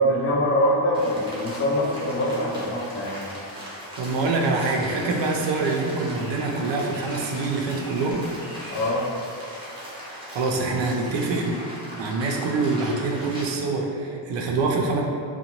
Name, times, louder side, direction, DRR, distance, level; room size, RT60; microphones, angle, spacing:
voice 1, 0.0-3.3 8.7-9.0, equal, 35° left, -6 dB, 0.4 m, -23 dB
Rain, 0.9-13.5, equal, 10° right, 0.6 m, -39 dB
voice 2, 4.0-8.2 10.0-11.6 12.0-15.0, right 3 dB, 65° right, 1 dB, 0.5 m, -25 dB
2.8 x 2.2 x 2.9 m, 2.5 s
wide cardioid pair, 155°, 47 cm